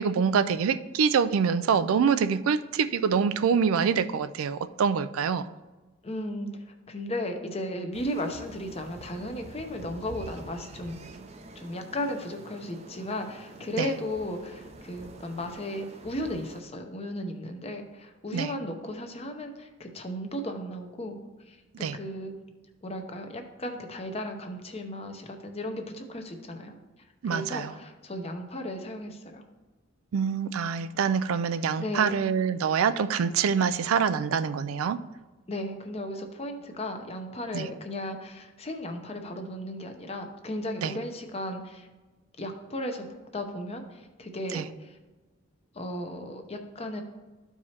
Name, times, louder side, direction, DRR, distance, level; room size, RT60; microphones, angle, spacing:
voice 1, 0.0-5.5 13.8-13.9 18.3-18.5 21.7-22.0 27.2-27.8 30.1-35.0 37.5-37.7 40.8-40.9 44.5-44.7, right 6 dB, 85° right, 12 dB, 0.4 m, -25 dB
voice 2, 6.0-11.0 11.6-21.2 21.5-22.3 22.8-26.8 27.2-29.4 31.8-32.2 35.5-41.9 42.4-43.1 43.3-45.0 45.7-47.0, left 1 dB, 30° left, 5 dB, 0.7 m, -35 dB
sound 1, 7.9-16.6, right 2 dB, 30° right, 0.5 m, -47 dB
13.0 x 4.7 x 2.9 m, 1.2 s
head